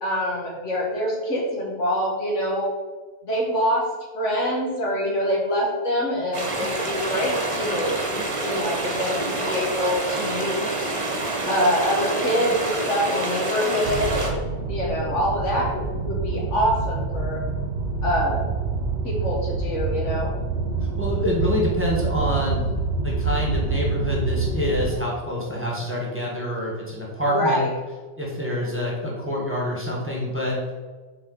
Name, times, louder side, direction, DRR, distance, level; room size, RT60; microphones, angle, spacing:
voice 1, 0.0-2.8 3.2-3.9 4.1-10.6 11.5-17.4 18.0-18.4 19.0-20.3 27.3-27.7, equal, 80° left, -3 dB, 2.0 m, -25 dB
sound 1, 6.3-14.3, right 2 dB, 30° right, 1.0 m, -27 dB
sound 2, 13.8-24.9, right 4 dB, 60° right, 1.0 m, -27 dB
voice 2, 20.8-22.7 23.0-27.6 28.2-30.6, equal, 10° right, -4 dB, 1.5 m, -26 dB
7.5 x 4.3 x 4.0 m, 1.3 s
omnidirectional pair, 1.2 m